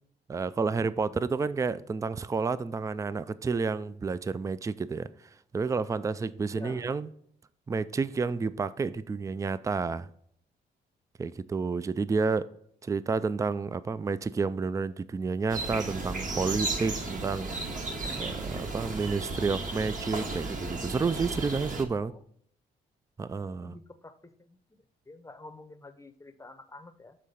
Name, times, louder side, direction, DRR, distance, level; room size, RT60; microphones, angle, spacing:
voice 1, 0.3-5.1 5.5-7.1 7.7-10.1 11.2-12.5 12.8-17.5 18.0-22.1 23.2-23.7, right 4 dB, 15° right, 0.3 m, -30 dB
voice 2, 6.5-6.9 22.1-22.2 23.4-24.6 25.1-27.2, left 2 dB, 15° left, 0.7 m, -48 dB
sound 1, 15.5-21.8, right 2 dB, 45° right, 1.4 m, -34 dB
6.7 x 3.7 x 5.5 m
supercardioid pair, 65°, 18 cm